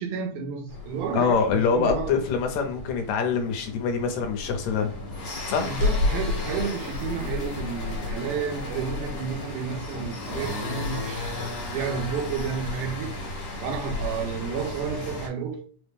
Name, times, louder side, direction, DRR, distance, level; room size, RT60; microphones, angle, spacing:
voice 1, 0.0-2.1 5.6-11.3 11.7-13.2 13.6-15.6, right 6 dB, 80° right, 2.1 m, -31 dB
sound 1, 0.7-15.3, left 2 dB, 60° left, 1.8 m, -32 dB
voice 2, 1.1-4.9 5.5-5.7, left 6 dB, 75° left, 2.0 m, -25 dB
5.0 x 2.1 x 3.3 m
omnidirectional pair, 3.5 m